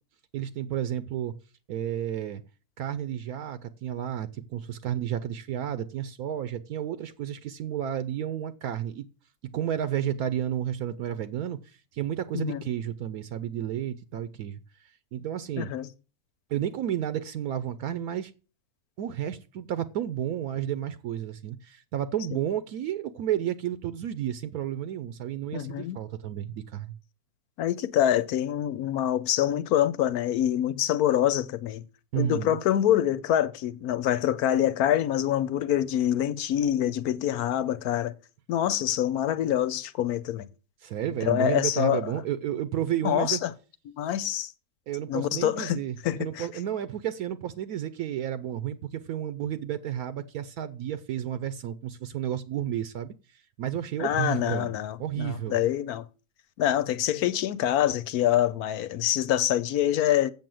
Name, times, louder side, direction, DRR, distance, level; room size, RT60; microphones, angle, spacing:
voice 1, 0.3-1.3 1.7-2.4 2.8-9.1 9.5-14.6 15.1-15.7 16.5-18.3 19.0-26.9 32.1-32.6 40.8-43.4 44.9-53.1 53.6-54.7 55.0-55.5, right 10 dB, 75° right, 1.2 m, -31 dB
voice 2, 15.6-15.9 22.3-22.4 25.5-26.0 27.6-31.8 32.1-38.1 38.5-40.5 41.2-42.0 43.0-43.5 44.0-44.5 45.1-46.5 54.0-56.0 56.6-60.3, left 11 dB, 80° left, 1.2 m, -25 dB
7.7 x 7.3 x 7.6 m
omnidirectional pair, 1.6 m